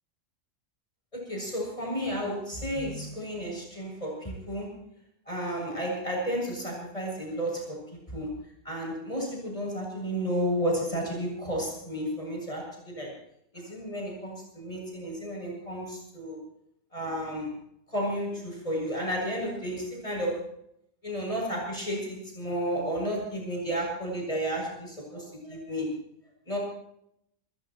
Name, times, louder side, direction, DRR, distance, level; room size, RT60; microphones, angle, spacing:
voice 1, 1.1-4.7 5.3-8.3 8.6-13.1 13.5-16.4 16.9-17.5 17.9-20.5 21.0-26.0 26.5-26.6, equal, 25° left, -1 dB, 7.5 m, -32 dB
29.5 x 15.0 x 3.1 m, 0.74 s
omnidirectional pair, 1.5 m